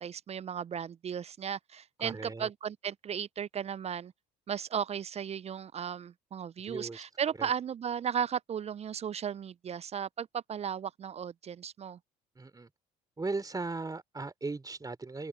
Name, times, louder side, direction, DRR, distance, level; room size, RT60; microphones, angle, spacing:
voice 1, 0.0-4.1 4.5-12.0, right 8 dB, 35° right, 0.5 m, -35 dB
voice 2, 2.0-2.5 6.6-7.0 7.4-7.5 12.3-12.7 13.2-15.3, right 3 dB, 20° right, 3.3 m, -37 dB
hypercardioid pair, 65°, 19 cm